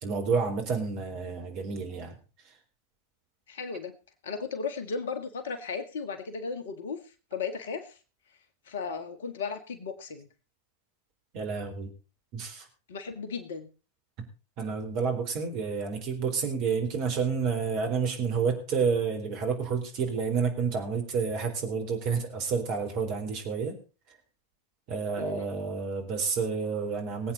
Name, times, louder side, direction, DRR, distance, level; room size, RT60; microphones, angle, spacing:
voice 1, 0.0-2.2 2.4-2.5 11.3-11.9 12.3-12.7 14.6-23.8 24.1-24.2 24.9-27.3, right 5 dB, 40° right, 5 dB, 4.1 m, -29 dB
voice 2, 3.5-3.9 4.2-7.0 7.3-8.0 8.7-10.3 12.9-13.7 25.2-25.5, left 5 dB, 60° left, 10 dB, 1.7 m, -35 dB
22.0 x 8.8 x 4.0 m, 0.32 s
figure-of-eight pair, 90°, 0 cm